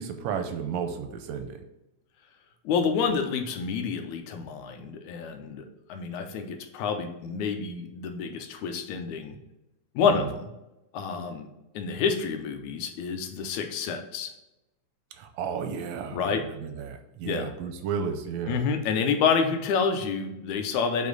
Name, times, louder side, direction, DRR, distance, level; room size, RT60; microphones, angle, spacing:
voice 1, 0.0-1.6 10.0-10.3 15.1-18.6, right 6 dB, 80° right, 6 dB, 1.8 m, -33 dB
voice 2, 2.7-9.3 10.0-10.5 10.9-11.5 11.7-14.3 16.1-16.4 17.3-17.5 18.5-21.1, left 6 dB, 85° left, 6 dB, 2.1 m, -28 dB
5.2 x 4.7 x 3.9 m, 0.94 s
omnidirectional pair, 3.3 m